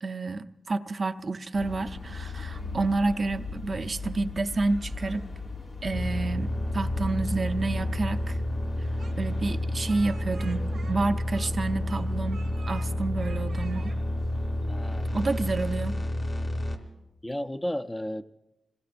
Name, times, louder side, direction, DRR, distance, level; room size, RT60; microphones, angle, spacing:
voice 1, 0.0-5.3 5.8-8.4 8.8-8.9 9.2-13.9 15.1-16.0, right 3 dB, 50° right, 0.5 m, -29 dB
sound 1, 1.5-15.5, left 3 dB, 65° left, 3.0 m, -40 dB
sound 2, 5.9-16.8, left 1 dB, 45° left, 2.9 m, -30 dB
Speech, 9.0-11.6 11.9-12.9 13.2-14.0, right 5 dB, 85° right, 1.1 m, -49 dB
voice 2, 14.6-15.1 17.2-18.2, equal, 15° left, 0.5 m, -33 dB
27.0 x 21.0 x 2.5 m
cardioid pair, 60°, 0 cm